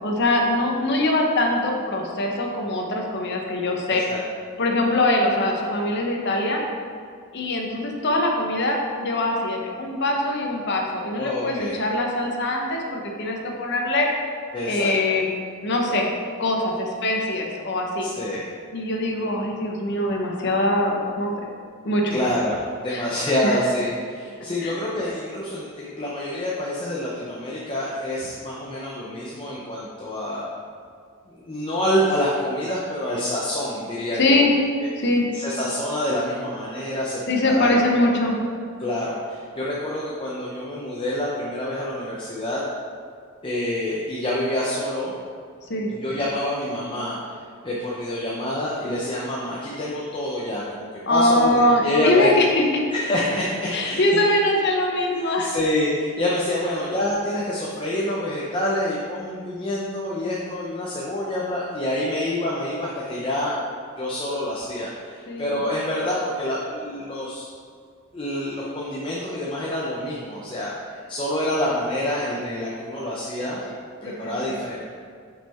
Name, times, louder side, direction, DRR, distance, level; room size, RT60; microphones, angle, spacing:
voice 1, 0.0-4.0 4.6-6.6 7.3-14.1 14.6-15.3 15.6-16.1 16.4-18.1 18.7-21.3 21.8-22.1 22.9-23.0 23.4-23.6 24.6-24.8 34.2-34.5 35.0-35.3 37.3-38.4 45.7-45.9 51.1-52.8 53.7-55.5 65.3-65.6 74.0-74.6, left 1 dB, 55° left, 1 dB, 0.9 m, -22 dB
voice 2, 3.9-4.2 11.2-11.8 14.5-14.9 18.0-18.4 22.1-30.5 31.3-34.4 34.8-35.1 35.3-37.8 38.8-42.6 43.4-45.1 45.9-47.3 47.6-52.3 52.9-54.2 55.4-63.6 64.0-67.5 68.1-73.7 74.0-74.8, left 1 dB, 25° left, -6 dB, 0.7 m, -27 dB
5.8 x 5.6 x 4.3 m, 2.1 s
head